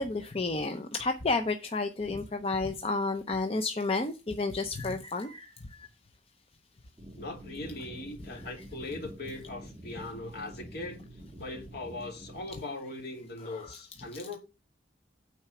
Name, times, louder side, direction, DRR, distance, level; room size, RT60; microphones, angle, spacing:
voice 1, 0.0-5.9 13.5-13.6, left 3 dB, 35° left, 0.7 m, -31 dB
sound 1, 7.0-12.4, right 1 dB, 15° right, 1.8 m, -47 dB
voice 2, 7.1-11.0 11.4-14.4, left 2 dB, 60° left, 2.7 m, -40 dB
8.9 x 4.5 x 5.9 m
head